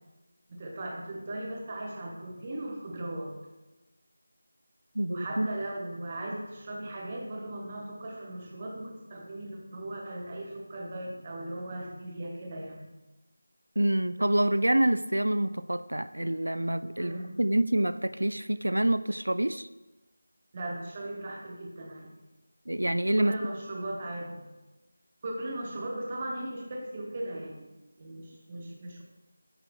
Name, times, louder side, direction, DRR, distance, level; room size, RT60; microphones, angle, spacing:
voice 1, 0.5-3.3 5.1-12.8 17.0-17.3 20.5-22.1 23.2-24.4 25.2-29.0, right 1 dB, 25° right, 0 dB, 1.0 m, -38 dB
voice 2, 5.0-5.5 13.8-19.7 22.7-23.4, right 1 dB, 75° right, 14 dB, 0.3 m, -27 dB
9.9 x 5.2 x 2.3 m, 1.1 s
figure-of-eight pair, 165°, 0 cm